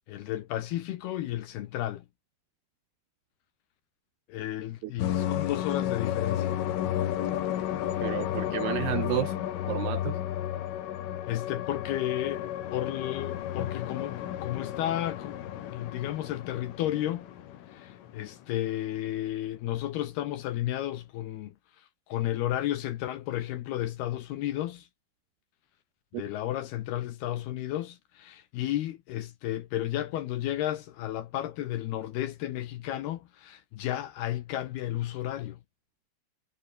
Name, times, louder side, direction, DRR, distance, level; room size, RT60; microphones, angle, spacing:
voice 1, 0.1-2.0 4.3-6.6 11.3-17.3 17.7-21.5 22.1-24.9 26.1-35.6, left 13 dB, 70° left, 2.7 m, -33 dB
sound 1, 5.0-18.4, left 11 dB, 85° left, 4.8 m, -32 dB
voice 2, 8.0-9.3 9.7-10.2 26.1-26.2, right 14 dB, 75° right, 2.5 m, -31 dB
omnidirectional pair, 5.6 m